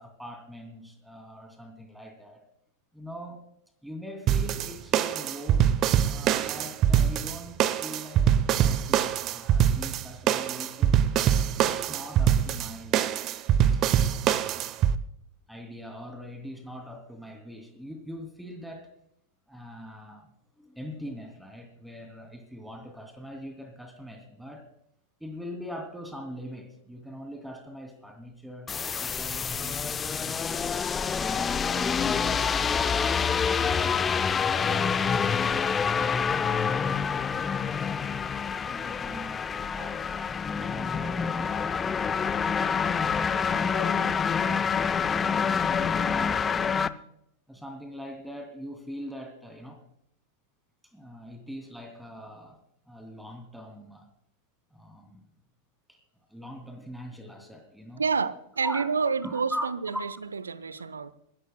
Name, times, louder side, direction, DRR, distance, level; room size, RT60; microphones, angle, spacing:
voice 1, 0.0-2.4 2.9-3.4 3.8-11.1 11.6-13.4 13.7-14.8 15.5-18.9 19.5-20.3 20.6-24.7 25.2-30.7 31.3-33.2 33.5-37.3 37.8-40.0 40.5-41.4 42.0-44.7 45.0-47.0 47.5-49.8 50.9-52.6 52.8-54.1 54.7-55.3 55.9-56.0 56.3-58.0 58.6-58.9 59.2-59.7 59.9-60.0, equal, ahead, 2.8 m, -42 dB
sound 1, 4.3-15.0, right 10 dB, 35° right, 0.7 m, -24 dB
sound 2, 28.7-46.9, left 6 dB, 20° left, 0.5 m, -27 dB
voice 2, 58.0-61.1, right 5 dB, 75° right, 0.7 m, -29 dB
26.5 x 14.0 x 2.2 m
figure-of-eight pair, 90°, 0 cm